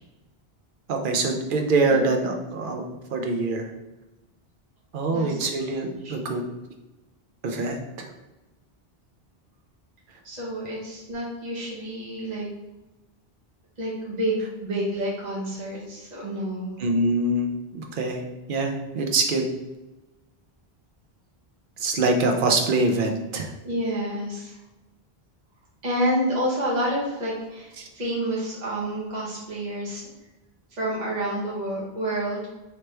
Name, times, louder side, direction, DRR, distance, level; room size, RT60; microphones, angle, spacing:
voice 1, 0.9-2.8 3.1-3.7 4.9-6.4 7.4-8.1 16.8-18.2 18.5-19.4 21.8-23.5 27.8-27.9, right 2 dB, 60° right, 3 dB, 0.7 m, -24 dB
voice 2, 5.1-5.7 6.0-6.1 10.2-12.5 13.8-16.8 23.6-24.6 25.8-30.0 30.7-32.5, right 1 dB, 45° right, -6 dB, 1.1 m, -29 dB
3.2 x 3.0 x 3.2 m, 1.0 s
omnidirectional pair, 1.0 m